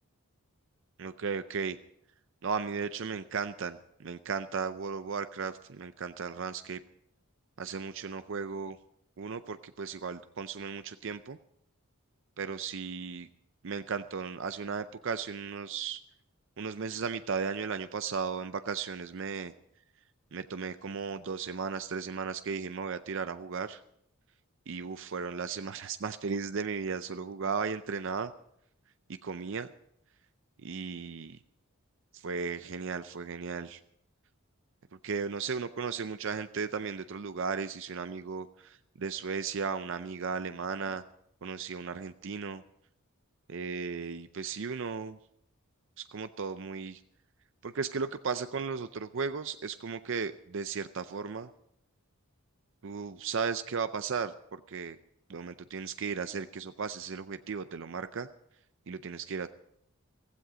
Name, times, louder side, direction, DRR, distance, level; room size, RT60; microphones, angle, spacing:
voice 1, 1.0-1.8 2.4-6.8 7.6-8.8 9.2-11.4 12.4-13.3 13.6-16.0 16.6-19.5 20.3-23.8 24.7-28.3 29.2-29.7 30.6-31.3 32.1-33.8 35.0-41.0 41.4-42.6 43.5-45.2 46.0-47.0 47.6-51.5 52.8-55.0 55.3-58.3 58.9-59.5, right 5 dB, 60° right, 11 dB, 0.5 m, -35 dB
15.5 x 15.5 x 5.0 m, 0.74 s
head